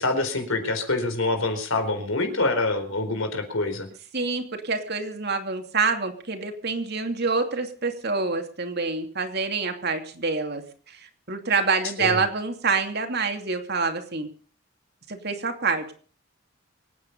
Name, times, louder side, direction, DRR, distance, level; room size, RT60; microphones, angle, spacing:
voice 1, 0.0-3.9 12.0-12.2, left 2 dB, 80° left, 7 dB, 4.2 m, -26 dB
voice 2, 4.1-14.3 15.1-15.9, right 4 dB, 50° right, 5 dB, 2.7 m, -27 dB
25.5 x 9.3 x 5.4 m, 0.43 s
head